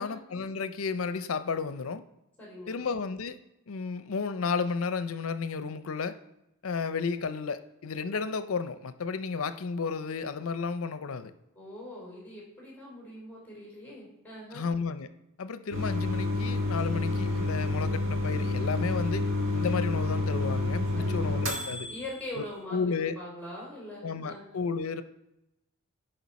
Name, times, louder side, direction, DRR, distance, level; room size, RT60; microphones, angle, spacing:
voice 1, 0.0-2.0 2.7-3.4 3.7-6.2 6.6-11.3 14.5-15.1 15.4-21.9 22.4-22.5 22.7-23.1 24.0-25.0, left 5 dB, 80° left, 12 dB, 0.6 m, -32 dB
voice 2, 2.4-2.8 11.5-14.7 20.9-21.4 21.9-24.4, left 1 dB, 10° left, -4 dB, 3.4 m, -42 dB
sound 1, 15.7-22.2, left 2 dB, 60° right, 1.5 m, -29 dB
10.5 x 5.2 x 4.1 m, 0.88 s
head